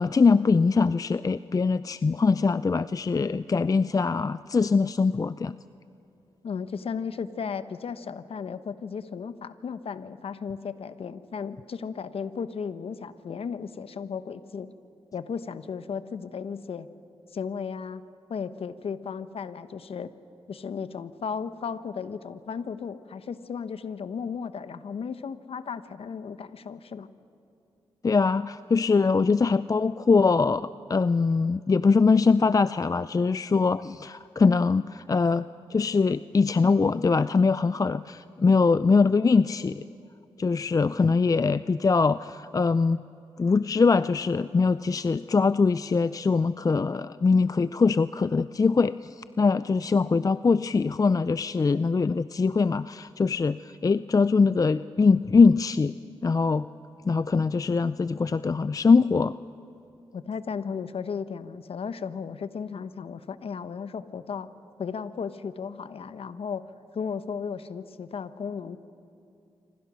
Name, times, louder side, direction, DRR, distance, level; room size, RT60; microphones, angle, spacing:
voice 1, 0.0-5.6 28.0-35.5 35.7-39.8 40.4-43.0 43.4-55.9 56.2-56.7 57.1-59.3, left 4 dB, 35° left, 15 dB, 0.5 m, -22 dB
voice 2, 6.4-14.7 15.1-16.9 17.3-18.0 18.3-20.1 20.5-27.1 60.1-64.5 64.8-66.6 66.9-68.9, left 6 dB, 70° left, 12 dB, 1.0 m, -35 dB
26.5 x 25.5 x 6.3 m, 2.7 s
cardioid pair, 50°, 10 cm